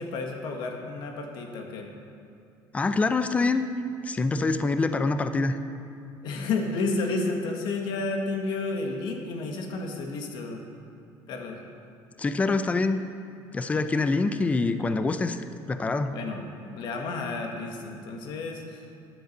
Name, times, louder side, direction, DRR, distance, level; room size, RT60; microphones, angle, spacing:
voice 1, 0.0-1.9 6.2-10.6 11.3-11.6 16.1-18.8, left 3 dB, 65° left, 3 dB, 1.6 m, -31 dB
voice 2, 2.7-3.6 4.0-5.6 12.2-13.0 13.5-16.1, left 3 dB, 15° left, 10 dB, 0.5 m, -25 dB
10.0 x 8.0 x 6.6 m, 2.6 s
cardioid pair, 140°, 8 cm